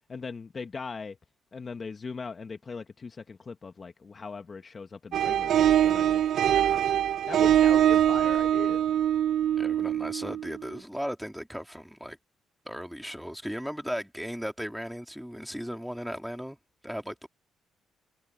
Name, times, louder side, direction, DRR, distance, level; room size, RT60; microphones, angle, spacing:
voice 1, 0.1-1.2 1.5-6.2 7.3-8.8, left 4 dB, 35° left, 1.3 m, -39 dB
sound 1, 5.1-10.6, right 10 dB, 70° right, 0.6 m, -23 dB
voice 2, 6.5-6.9 9.6-12.2 12.6-16.6 16.8-17.3, equal, ahead, 2.8 m, -36 dB
cardioid pair, 90°, 0 cm